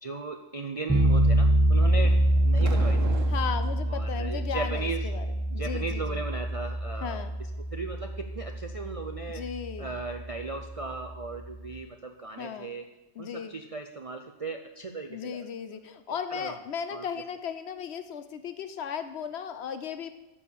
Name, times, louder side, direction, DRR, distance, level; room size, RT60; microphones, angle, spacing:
voice 1, 0.0-2.2 2.4-3.3 3.9-5.1 5.5-7.2 7.7-9.4 9.8-12.9 13.2-15.4 16.1-16.5 16.9-17.0, right 3 dB, 50° right, 4 dB, 0.4 m, -37 dB
sound 1, 0.9-11.8, right 1 dB, 5° right, 0.9 m, -26 dB
sound 2, 2.0-3.8, right 5 dB, 75° right, 1.3 m, -38 dB
voice 2, 3.3-5.3 5.5-6.2 7.0-7.3 9.3-9.9 12.4-12.7 13.2-13.6 15.1-20.1, left 7 dB, 60° left, 10 dB, 0.8 m, -36 dB
12.0 x 4.7 x 7.0 m, 1.0 s
omnidirectional pair, 1.4 m